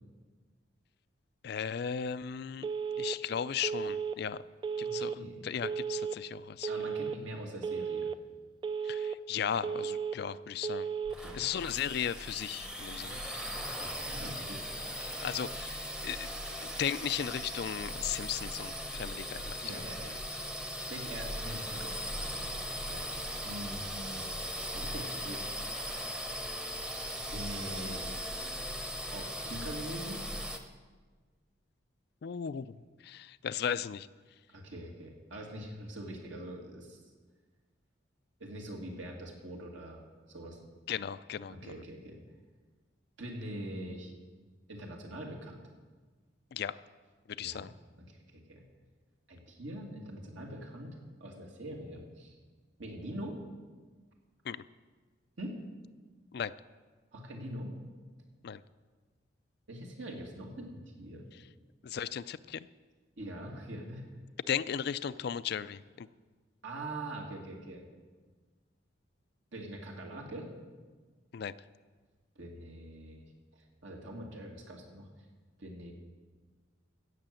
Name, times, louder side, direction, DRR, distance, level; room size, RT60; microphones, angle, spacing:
voice 1, 1.4-2.7 3.0-4.4 4.8-6.7 8.8-10.9 11.3-13.2 15.2-16.3 16.8-19.7 32.2-32.7 33.0-34.1 40.9-41.7 46.5-46.8 47.3-47.7 54.4-54.6 56.3-56.5 58.4-58.6 61.8-62.7 64.5-66.1 71.3-71.5, left 8 dB, 55° left, 16 dB, 0.4 m, -36 dB
Telephone, 2.6-3.2 3.6-4.2 4.6-5.2 5.6-6.2 6.6-7.2 7.6-8.2 8.6-9.2 9.6-10.2 10.6-11.2, right 6 dB, 25° right, 0.3 m, -34 dB
voice 2, 4.8-5.4 6.7-8.1 11.1-11.4 13.7-14.7 19.6-20.6 20.9-25.5 27.3-28.1 29.1-30.2 34.5-37.0 38.4-40.0 40.3-40.6 41.5-42.2 43.2-44.1 44.7-45.6 47.4-47.7 48.1-48.6 49.3-52.4 52.8-53.4 55.4-55.6 57.1-57.7 59.7-61.3 63.2-64.0 66.6-67.9 69.5-70.5 72.4-73.2 73.5-75.1 75.6-75.9, right 1 dB, 75° right, 0 dB, 2.5 m, -43 dB
sound 1, 11.0-30.6, equal, 5° right, 0.8 m, -39 dB
16.0 x 6.6 x 7.7 m, 1.4 s
head